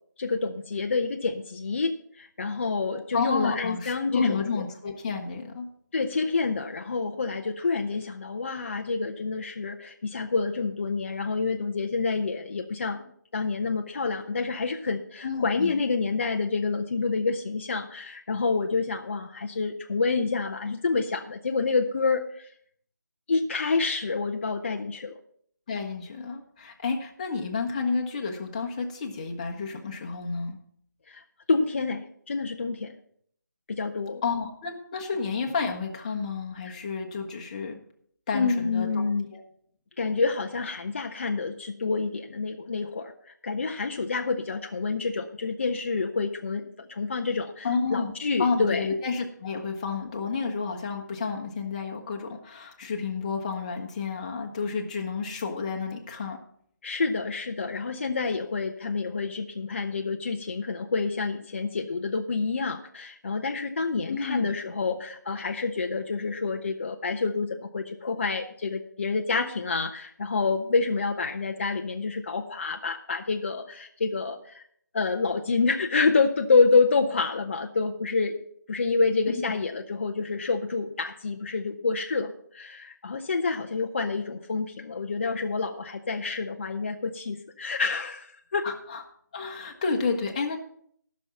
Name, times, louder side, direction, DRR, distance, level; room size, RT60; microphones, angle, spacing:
voice 1, 0.2-4.6 5.9-13.1 13.3-22.5 23.3-25.2 31.1-31.2 31.5-33.0 33.7-34.2 38.3-39.3 40.0-48.9 56.8-74.6 74.9-78.4 78.7-88.7, left 4 dB, 40° left, 4 dB, 0.7 m, -28 dB
voice 2, 3.1-5.7 15.2-15.8 25.7-30.6 34.2-37.8 38.3-39.0 39.3-39.4 47.6-48.1 48.4-56.4 64.1-64.5 88.6-89.0 89.3-90.6, left 4 dB, 25° left, 2 dB, 1.2 m, -30 dB
14.5 x 6.3 x 5.8 m, 0.65 s
figure-of-eight pair, 160°, 10 cm